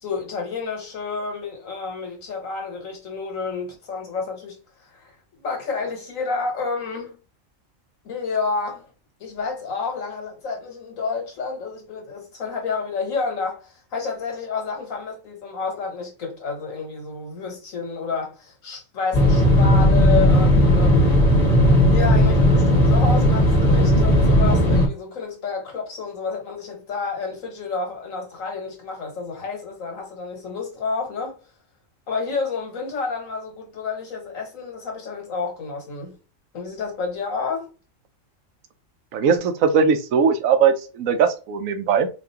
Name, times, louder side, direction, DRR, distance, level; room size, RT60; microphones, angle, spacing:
voice 1, 0.0-4.6 4.9-7.2 8.0-8.9 9.2-21.3 21.9-31.4 32.1-36.2 36.5-37.7, left 4 dB, 85° left, 1.6 m, -30 dB
sound 1, 19.1-24.9, equal, 30° left, 1.4 m, -16 dB
voice 2, 39.1-42.1, right 6 dB, 90° right, 1.0 m, -19 dB
4.2 x 2.5 x 2.8 m
omnidirectional pair, 1.3 m